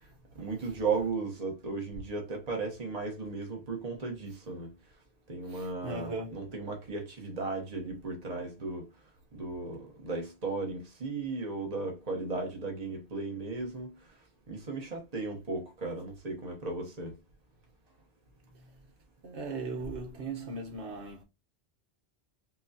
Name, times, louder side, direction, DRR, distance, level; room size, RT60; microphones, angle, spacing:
voice 1, 0.3-4.7 5.3-8.8 9.3-14.1 14.5-17.2, right 3 dB, 35° right, 1.2 m, -36 dB
voice 2, 5.5-6.4 18.5-18.7 19.2-21.2, right 3 dB, 75° right, 1.3 m, -38 dB
6.1 x 2.3 x 2.7 m
omnidirectional pair, 1.2 m